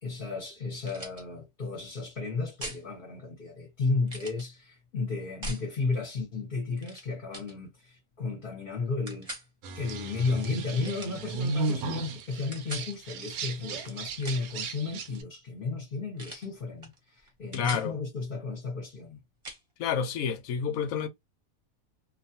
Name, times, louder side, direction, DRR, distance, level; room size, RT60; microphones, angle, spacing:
voice 1, 0.0-9.3 9.7-19.2, left 3 dB, 40° left, 0.9 m, -33 dB
sound 1, 0.8-1.2 2.6-2.8 4.1-4.4 5.4-5.7 6.8-7.0 7.3-7.5 9.1-9.5 10.8-11.2 12.5-12.9 14.0-14.6 16.2-16.5 16.8-17.0 17.3-17.9 19.4-19.6, right 1 dB, 30° right, 0.8 m, -41 dB
sound 2, 9.6-15.2, right 3 dB, 80° right, 1.0 m, -35 dB
voice 2, 17.5-18.0 19.8-21.1, left 7 dB, 75° left, 1.0 m, -29 dB
2.5 x 2.3 x 2.7 m
omnidirectional pair, 1.5 m